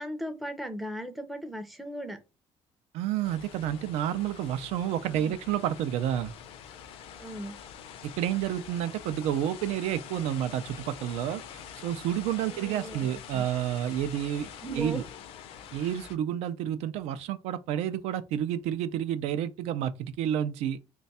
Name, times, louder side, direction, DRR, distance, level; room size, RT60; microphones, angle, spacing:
voice 1, 0.0-2.2 4.9-5.4 7.2-7.6 12.4-13.4 14.6-15.0, right 1 dB, ahead, 0.4 m, -38 dB
voice 2, 2.9-6.3 8.0-11.4 11.8-14.5 14.7-15.0 15.7-20.8, right 10 dB, 85° right, 0.4 m, -30 dB
sound 1, 3.2-16.2, left 8 dB, 60° left, 0.5 m, -45 dB
3.2 x 2.3 x 4.0 m
cardioid pair, 175°, 11 cm